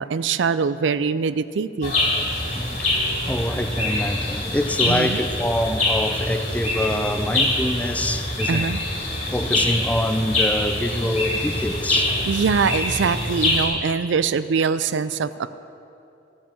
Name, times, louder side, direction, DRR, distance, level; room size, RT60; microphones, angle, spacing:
voice 1, 0.0-1.9 4.9-5.2 8.5-8.8 12.2-15.5, right 5 dB, 80° right, 0.4 m, -23 dB
sound 1, 1.8-13.7, left 1 dB, 45° left, 2.6 m, -24 dB
voice 2, 2.5-8.7 9.3-12.1, left 1 dB, 10° left, 0.5 m, -25 dB
14.0 x 7.3 x 7.4 m
head